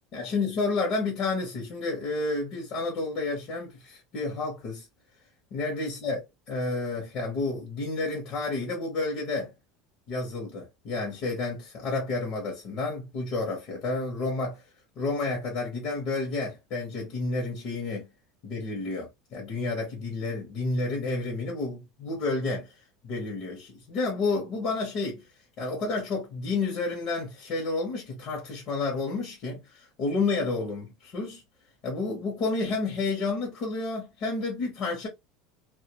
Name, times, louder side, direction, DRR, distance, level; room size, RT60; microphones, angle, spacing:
voice 1, 0.1-4.8 5.5-9.5 10.1-14.6 15.0-18.1 18.4-22.7 23.0-25.2 25.6-31.4 31.8-35.1, left 3 dB, 40° left, 0.8 m, -30 dB
2.2 x 2.2 x 2.8 m
cardioid pair, 160°, 0 cm